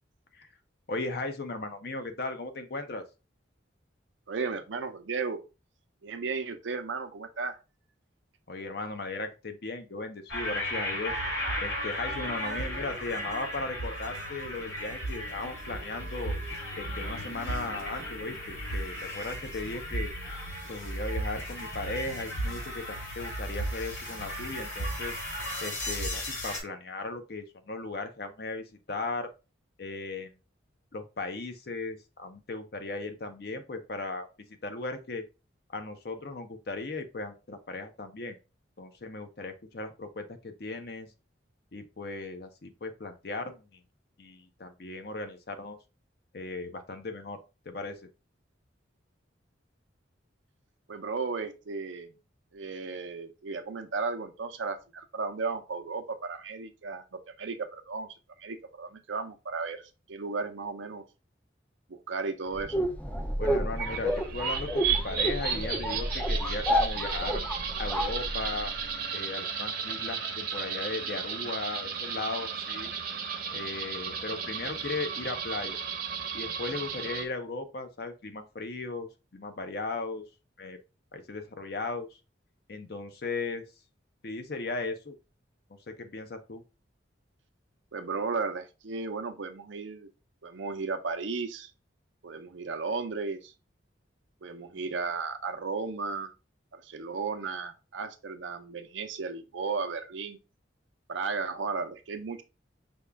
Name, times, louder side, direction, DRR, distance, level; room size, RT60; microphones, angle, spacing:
voice 1, 0.9-3.0 8.5-11.2 11.6-16.4 16.8-20.1 20.7-25.1 25.6-29.3 29.8-30.3 30.9-34.3 34.6-35.2 35.7-38.4 38.8-41.1 41.7-43.8 44.2-45.8 46.3-47.4 47.7-48.1 63.4-67.4 67.8-68.7 69.1-72.9 73.5-75.8 76.3-80.2 80.6-80.8 81.1-82.1 82.7-83.6 84.2-85.1 85.9-86.6, left 3 dB, 55° left, 7 dB, 0.6 m, -37 dB
voice 2, 4.3-5.4 6.0-7.6 50.9-52.1 52.5-61.0 61.9-62.8 87.9-90.1 90.4-91.7 92.2-93.5 94.4-96.3 96.7-100.4 101.1-102.4, right 4 dB, 80° right, 7 dB, 0.6 m, -35 dB
sound 1, 10.3-26.6, equal, 85° left, 2.3 m, -35 dB
sound 2, 62.5-68.8, equal, 10° left, 0.4 m, -30 dB
sound 3, 63.8-77.2, right 6 dB, 50° right, 0.7 m, -34 dB
5.3 x 2.3 x 3.4 m, 0.29 s
head